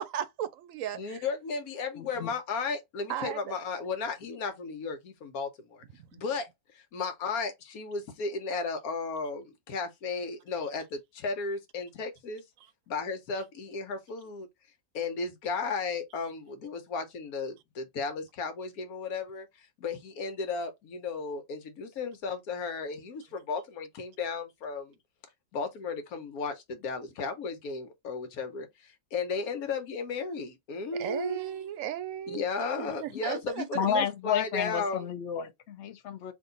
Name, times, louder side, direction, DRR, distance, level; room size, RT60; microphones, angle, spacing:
voice 1, 0.0-1.3 3.1-3.5 31.0-32.4 32.8-34.1, right 10 dB, 70° right, 0.9 m, -35 dB
voice 2, 0.9-5.8 6.1-6.5 6.7-12.4 12.9-14.5 14.9-24.9 25.5-31.4 32.3-35.1, left 4 dB, 75° left, 1.4 m, -34 dB
voice 3, 2.0-2.3 33.7-36.3, left 8 dB, 55° left, 1.0 m, -31 dB
3.5 x 2.7 x 3.9 m
omnidirectional pair, 1.6 m